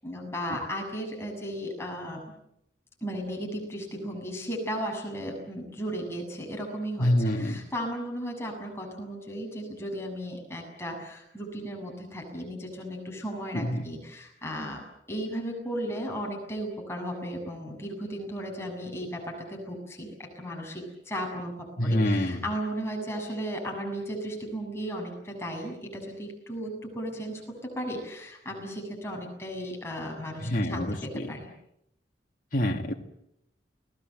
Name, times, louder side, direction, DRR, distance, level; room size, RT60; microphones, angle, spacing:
voice 1, 0.0-2.2 3.0-7.1 7.4-14.8 15.1-31.5, equal, 15° left, 1 dB, 7.1 m, -35 dB
voice 2, 7.0-7.6 13.5-13.8 21.8-22.4 30.4-31.3 32.5-32.9, left 1 dB, 45° left, 2 dB, 2.4 m, -26 dB
29.5 x 20.0 x 7.9 m, 0.79 s
head